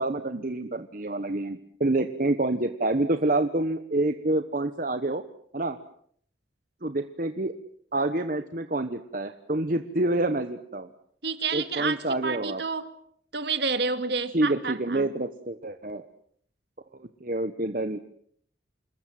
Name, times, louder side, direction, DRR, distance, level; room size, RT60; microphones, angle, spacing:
voice 1, 0.0-5.2 5.5-5.8 6.8-7.5 7.9-10.9 11.5-12.6 14.3-16.0 17.2-18.0, right 2 dB, 45° right, 1.1 m, -27 dB
voice 2, 11.2-12.9 13.3-15.1, right 4 dB, 60° right, 2.2 m, -29 dB
27.5 x 21.5 x 7.7 m
head